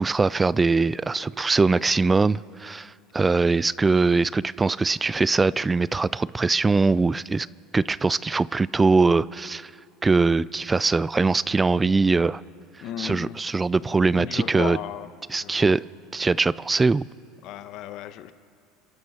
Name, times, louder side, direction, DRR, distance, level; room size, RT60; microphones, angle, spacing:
voice 1, 0.0-7.5 7.7-9.7 10.0-12.4 13.0-14.8 15.3-15.8 16.1-17.1, right 3 dB, 15° right, 20 dB, 0.3 m, -22 dB
voice 2, 12.8-13.4 14.1-15.7 17.4-18.3, left 12 dB, 60° left, 11 dB, 1.0 m, -35 dB
30.0 x 11.0 x 4.2 m, 2.5 s
supercardioid pair, 95°, 0 cm